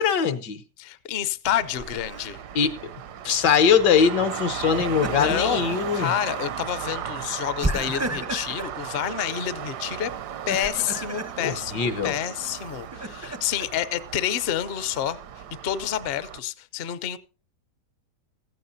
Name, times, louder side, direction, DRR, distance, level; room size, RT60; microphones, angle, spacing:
voice 1, 0.0-0.6 2.5-2.9 3.2-6.1 11.4-12.1, left 7 dB, 80° left, 1.7 m, -22 dB
voice 2, 0.8-2.4 5.1-10.1 10.5-15.2 15.6-17.2, left 10 dB, 55° left, 0.7 m, -29 dB
Traffic noise roadway noise, 1.4-16.4, right 10 dB, 75° right, 1.3 m, -36 dB
Laughter, 1.8-2.3 4.6-5.5 6.0-6.1 7.6-8.8 10.3-11.3 12.4-13.7, right 1 dB, 20° right, 0.4 m, -32 dB
15.5 x 15.0 x 2.7 m
omnidirectional pair, 1.8 m